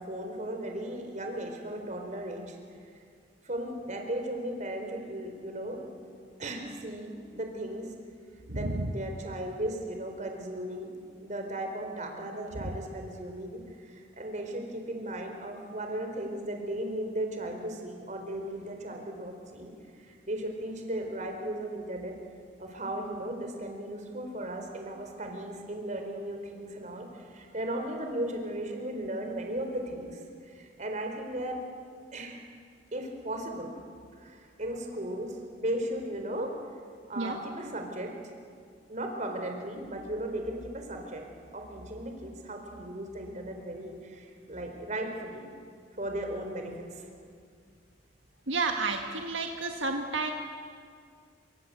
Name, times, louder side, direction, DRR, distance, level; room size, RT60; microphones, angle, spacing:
voice 1, 0.0-2.6 3.4-5.9 6.4-7.9 8.5-10.9 11.2-19.7 20.0-22.1 22.6-31.6 32.1-32.4 32.9-33.7 34.2-36.5 37.1-38.1 38.9-41.2 41.5-45.4 46.0-47.1, right 1 dB, 40° right, 3 dB, 4.3 m, -36 dB
voice 2, 8.5-8.9 12.6-12.7 37.2-37.4 48.5-50.3, right 3 dB, 80° right, 3 dB, 1.7 m, -31 dB
26.5 x 25.0 x 8.2 m, 2.2 s
head